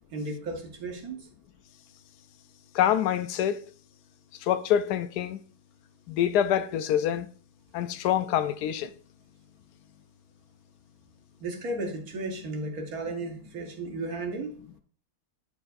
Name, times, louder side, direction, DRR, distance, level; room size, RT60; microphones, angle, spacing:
voice 1, 0.1-1.2 11.4-14.5, right 2 dB, 65° right, 1.7 m, -34 dB
voice 2, 2.7-3.6 4.4-5.4 6.1-7.3 7.7-8.9, left 10 dB, 85° left, 1.1 m, -26 dB
10.5 x 4.6 x 2.5 m
omnidirectional pair, 1.7 m